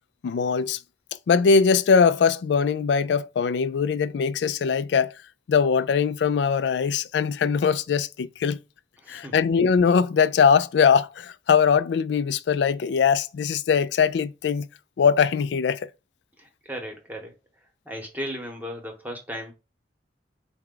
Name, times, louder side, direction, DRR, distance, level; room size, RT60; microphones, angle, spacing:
voice 1, 0.2-0.8 1.3-5.1 5.5-8.6 9.1-14.7 15.0-15.8, left 6 dB, 75° left, 0.3 m, -21 dB
voice 2, 9.0-9.4 16.4-17.4 17.8-19.5, equal, 10° right, 1.0 m, -36 dB
4.6 x 2.2 x 3.7 m
head